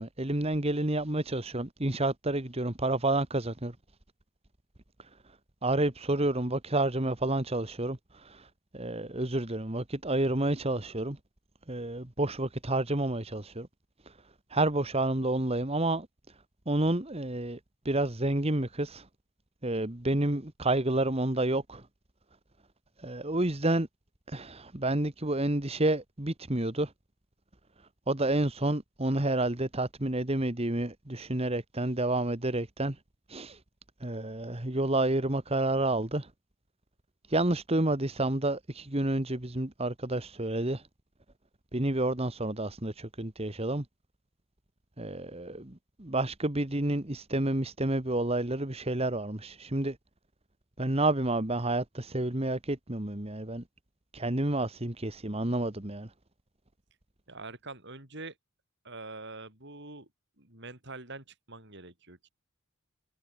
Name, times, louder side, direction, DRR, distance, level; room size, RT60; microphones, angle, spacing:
voice 1, 0.0-3.8 5.0-5.4 5.6-11.2 11.7-13.7 14.0-17.6 17.9-19.1 19.6-21.9 23.0-23.9 24.3-26.9 27.8-33.0 33.3-33.6 34.0-36.3 37.3-40.9 41.7-43.9 45.0-50.0 50.8-53.6 54.1-56.1, right 2 dB, 30° right, 1.6 m, -30 dB
voice 2, 57.3-58.4 58.8-60.1 60.4-62.3, right 3 dB, 55° right, 6.4 m, -44 dB
head